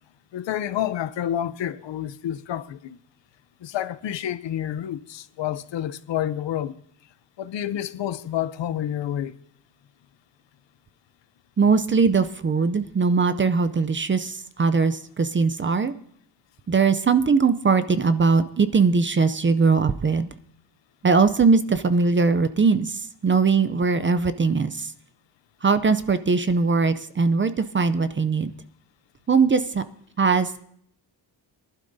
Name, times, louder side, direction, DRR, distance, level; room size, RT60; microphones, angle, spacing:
voice 1, 0.3-3.0 3.6-6.8 7.4-9.3, left 11 dB, 70° left, 0.7 m, -29 dB
voice 2, 11.6-15.9 16.7-20.3 21.0-24.9 25.6-28.5 29.3-29.8 30.2-30.6, right 4 dB, 25° right, 0.5 m, -21 dB
22.5 x 12.0 x 2.7 m
wide cardioid pair, 155°, 45 cm